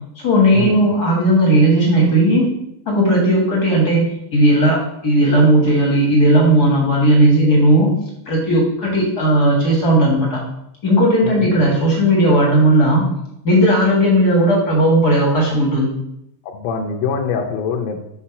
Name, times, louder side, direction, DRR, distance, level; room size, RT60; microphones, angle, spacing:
voice 1, 0.2-2.5 2.8-4.0 4.3-7.9 8.3-10.4 10.8-13.1 13.4-15.9, right 1 dB, 45° left, -2 dB, 1.2 m, -15 dB
voice 2, 11.2-11.6 16.4-18.0, left 5 dB, 75° left, 1 dB, 2.1 m, -24 dB
5.8 x 4.6 x 5.7 m, 0.79 s
omnidirectional pair, 3.9 m